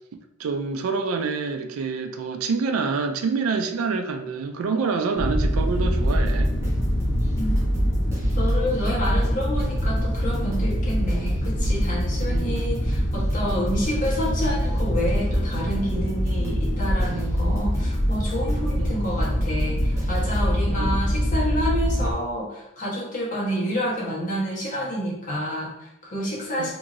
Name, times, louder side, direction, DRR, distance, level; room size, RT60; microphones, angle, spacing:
voice 1, 0.4-6.5 12.2-12.6 18.8-19.0 20.6-21.0 26.6-26.7, right 4 dB, 90° right, 7 dB, 0.4 m, -27 dB
sound 1, 5.2-22.1, equal, 65° left, 0.7 m, -24 dB
sound 2, 5.9-20.5, equal, 15° right, 0.8 m, -37 dB
voice 2, 8.4-26.7, equal, 40° left, -6 dB, 1.0 m, -29 dB
2.9 x 2.7 x 2.5 m, 0.83 s
head